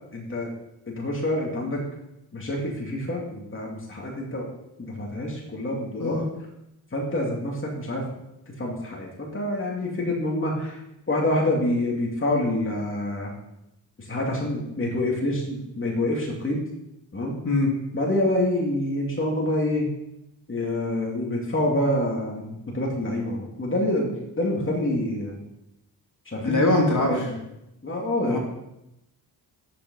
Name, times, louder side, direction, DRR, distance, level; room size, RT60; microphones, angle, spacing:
voice 1, 0.1-0.5 0.9-1.8 2.3-4.4 4.8-6.3 6.9-8.0 8.6-10.8 11.1-13.3 14.0-16.6 17.1-17.3 17.9-19.9 20.5-24.1 24.4-25.4 26.3-26.7 27.1-27.4 27.8-28.4, left 1 dB, 30° left, -2 dB, 2.7 m, -27 dB
voice 2, 26.4-27.1 28.3-28.4, left 2 dB, 45° left, 0 dB, 2.9 m, -22 dB
9.9 x 7.2 x 5.5 m, 0.86 s
cardioid pair, 75°, 43 cm